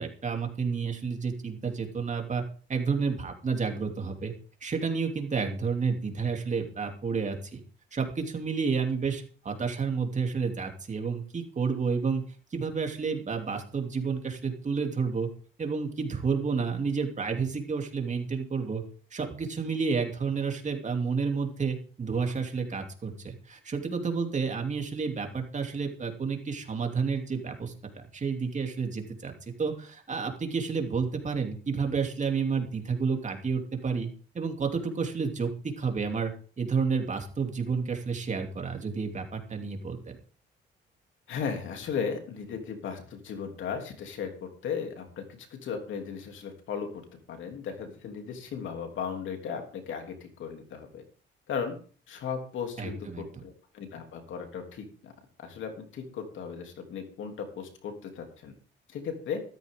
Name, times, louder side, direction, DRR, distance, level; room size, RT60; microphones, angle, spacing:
voice 1, 0.0-2.4 2.7-4.3 4.6-7.6 7.9-12.2 12.5-15.3 15.6-18.8 19.1-29.3 29.6-34.1 34.3-35.5 35.8-36.3 36.6-40.1 52.8-53.4, right 5 dB, 35° right, 3 dB, 3.0 m, -30 dB
voice 2, 41.3-45.2 45.5-47.0 47.3-51.0 51.5-51.8 52.1-55.1 55.4-58.5 58.9-59.4, left 6 dB, 75° left, 4 dB, 3.1 m, -36 dB
14.0 x 13.5 x 3.8 m, 0.41 s
cardioid pair, 90°, 20 cm